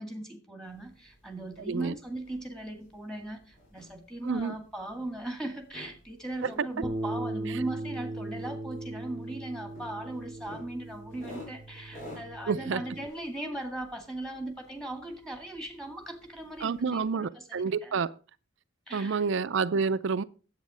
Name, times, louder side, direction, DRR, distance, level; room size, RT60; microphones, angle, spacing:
voice 1, 0.0-18.0 18.9-19.2, right 1 dB, 5° left, 2.0 m, -38 dB
up stairs, 0.6-17.1, left 1 dB, 45° left, 6.6 m, -53 dB
voice 2, 4.2-4.5 12.5-12.8 16.6-18.1 18.9-20.2, right 5 dB, 65° right, 0.4 m, -29 dB
Bass guitar, 6.8-13.1, right 2 dB, 20° right, 0.8 m, -38 dB
9.4 x 8.2 x 5.0 m
head